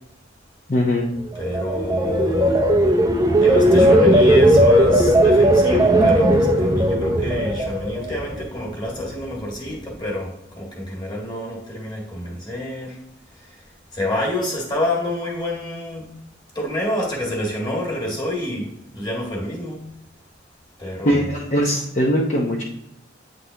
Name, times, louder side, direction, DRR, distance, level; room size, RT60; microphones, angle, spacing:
voice 1, 0.7-1.1 21.0-22.6, equal, 40° left, -3 dB, 0.8 m, -20 dB
sound 1, 1.3-8.5 8.9-9.3, right 1 dB, 20° right, 0.5 m, -16 dB
voice 2, 1.4-2.7 3.4-13.0 13.4-13.6 13.9-16.1 16.5-19.8 20.8-21.3, left 1 dB, 25° left, -2 dB, 1.8 m, -27 dB
8.8 x 3.9 x 2.8 m, 0.81 s
head